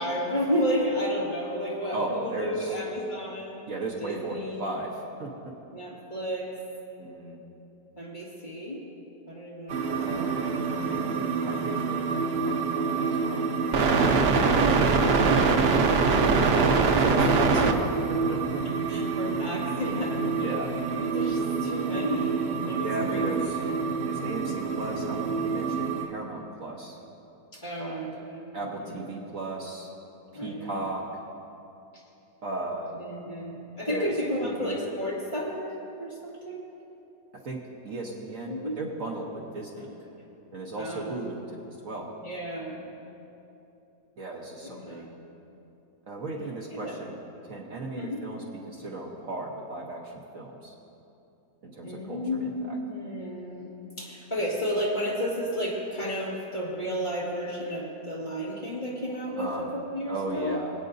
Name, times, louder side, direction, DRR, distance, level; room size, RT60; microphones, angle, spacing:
voice 1, 0.0-3.6 4.0-4.7 5.7-6.5 8.0-8.9 9.3-10.6 14.7-15.6 18.6-20.2 21.0-23.7 27.5-29.0 30.3-30.8 32.9-36.7 38.4-38.8 39.8-40.0 40.8-41.2 42.2-42.8 44.6-45.1 46.7-47.0 48.0-48.2 51.8-53.7 54.0-60.6, equal, 25° left, -5 dB, 2.0 m, -32 dB
voice 2, 1.9-2.8 3.7-5.3 7.0-7.4 10.0-13.4 16.2-18.6 20.4-20.8 22.8-27.0 27.8-28.1 28.5-29.9 30.3-31.2 32.4-33.0 33.9-34.1 34.4-34.8 37.4-37.6 37.8-39.9 40.5-42.1 44.2-45.1 46.1-50.7 51.6-52.8 59.4-59.7 60.1-60.7, right 2 dB, 55° right, -1 dB, 1.3 m, -36 dB
sound 1, 9.7-26.1, right 4 dB, 70° right, 0.5 m, -25 dB
sound 2, 15.6-24.1, right 4 dB, 80° left, 4.0 m, -39 dB
24.0 x 8.9 x 2.6 m, 2.9 s
omnidirectional pair, 1.9 m